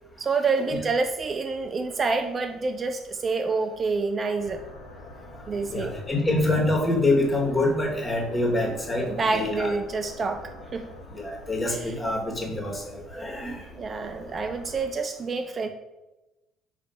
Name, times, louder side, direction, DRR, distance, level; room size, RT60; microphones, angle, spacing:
voice 1, 0.2-4.6 5.5-6.0 9.0-10.9 11.8-11.9 13.8-15.7, right 4 dB, 40° right, 7 dB, 0.4 m, -27 dB
sound 1, 4.4-14.9, left 2 dB, 90° left, 0.7 m, -45 dB
voice 2, 5.7-9.7 11.1-13.6, left 2 dB, 25° left, 0 dB, 1.5 m, -26 dB
4.0 x 2.8 x 4.4 m, 1.0 s
hypercardioid pair, 60°, 0 cm